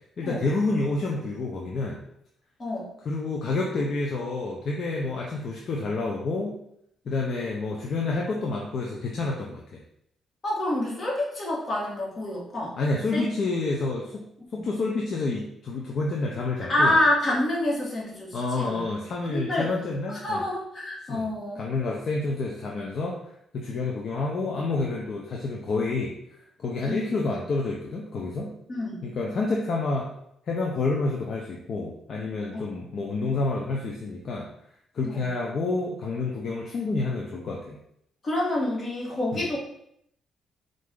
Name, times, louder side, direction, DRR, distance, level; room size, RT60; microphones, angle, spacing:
voice 1, 0.2-2.0 3.1-6.5 7.1-9.8 12.8-14.2 14.5-16.9 18.3-20.4 21.1-21.3 21.6-23.2 23.5-26.1 26.6-28.5 29.0-30.1 30.5-34.5 34.9-37.8 39.3-39.4, left 3 dB, 55° left, -2 dB, 0.6 m, -28 dB
voice 2, 10.4-12.8 13.1-13.3 14.5-14.6 16.7-18.8 19.2-19.7 20.1-21.6 26.9-27.1 28.7-29.0 32.5-32.6 35.0-35.3 38.2-39.6, left 1 dB, 35° left, -4 dB, 1.6 m, -27 dB
4.3 x 2.6 x 3.7 m, 0.73 s
cardioid pair, 90°, 0 cm